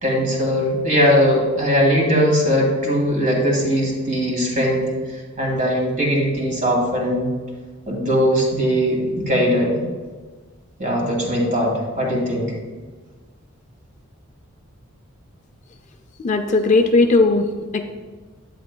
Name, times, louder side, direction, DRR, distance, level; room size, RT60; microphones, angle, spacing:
voice 1, 0.0-4.9 5.4-7.3 7.9-9.8 10.8-12.5, equal, 35° right, -1 dB, 2.0 m, -19 dB
voice 2, 16.2-17.8, left 3 dB, 35° left, 5 dB, 0.4 m, -17 dB
10.0 x 8.2 x 2.2 m, 1.4 s
head